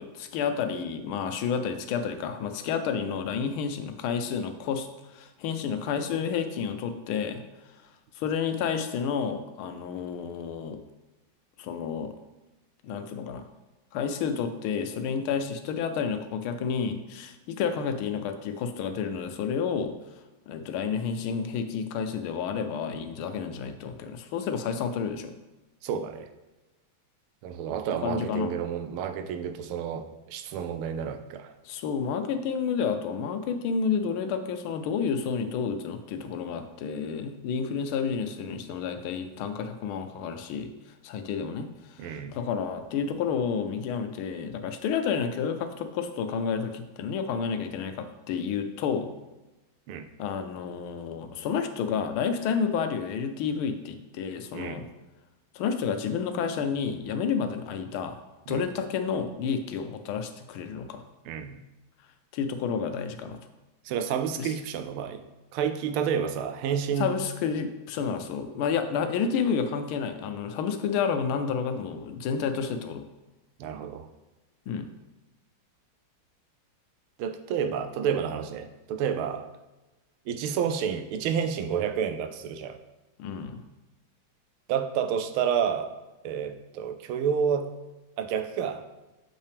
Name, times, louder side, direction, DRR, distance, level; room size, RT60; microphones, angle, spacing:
voice 1, 0.0-7.4 8.1-10.8 11.6-12.1 12.8-13.5 13.9-19.9 20.5-25.3 28.0-28.5 31.6-40.7 41.0-49.1 50.2-54.8 55.5-58.2 58.5-61.0 62.3-63.4 64.4-64.5 67.0-73.1 74.7-74.9 83.2-83.6, left 6 dB, 85° left, 8 dB, 1.5 m, -30 dB
voice 2, 25.8-26.3 27.4-31.5 42.0-42.4 49.9-50.1 54.5-54.9 58.5-58.6 61.2-61.6 63.8-65.2 65.5-67.1 73.6-74.1 77.2-79.5 80.3-82.8 84.7-85.9 86.2-87.7 88.2-88.8, right 7 dB, 90° right, 8 dB, 1.5 m, -30 dB
7.0 x 5.4 x 3.4 m, 1.1 s
omnidirectional pair, 2.3 m